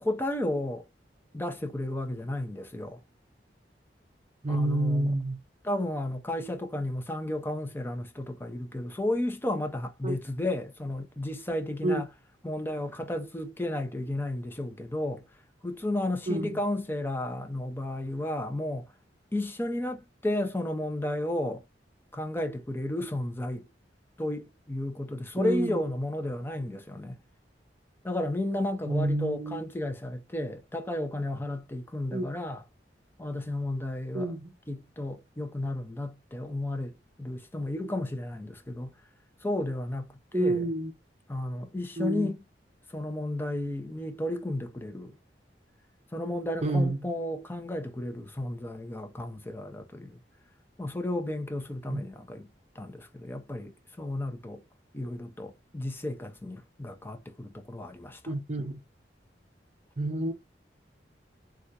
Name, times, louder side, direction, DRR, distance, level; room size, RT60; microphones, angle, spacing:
voice 1, 0.0-0.8 1.3-3.0 4.5-5.2 5.6-12.1 12.4-15.2 15.6-18.9 19.3-21.6 22.1-23.7 24.2-27.2 28.0-32.6 33.2-34.3 34.7-36.9 37.2-38.9 39.4-40.7 41.3-42.4 42.9-45.2 46.1-50.2 50.8-52.5 52.8-53.7 54.0-54.6 54.9-58.3, left 1 dB, 10° left, 0.5 m, -33 dB
voice 2, 4.4-5.4 10.0-10.1 11.8-12.0 16.3-16.6 25.4-25.8 28.9-29.6 32.1-32.3 34.1-34.5 40.3-40.9 42.0-42.3 46.6-47.0 51.9-52.0 58.3-58.8 60.0-60.3, right 2 dB, 40° right, 0.7 m, -28 dB
3.4 x 2.3 x 2.7 m
head